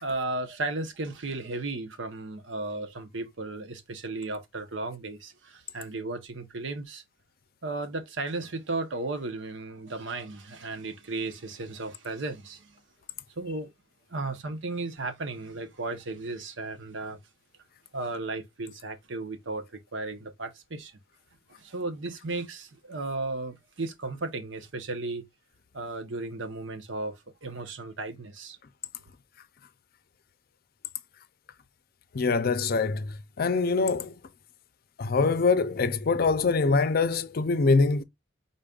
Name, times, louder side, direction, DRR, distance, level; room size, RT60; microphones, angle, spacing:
voice 1, 0.0-7.0 7.6-12.8 13.4-13.7 14.1-17.2 17.9-20.9 21.6-25.2 25.7-28.6, right 2 dB, 85° right, 0.9 m, -35 dB
voice 2, 32.2-33.0 33.4-34.1 35.0-38.0, left 4 dB, 55° left, 0.5 m, -24 dB
5.2 x 3.9 x 2.3 m
head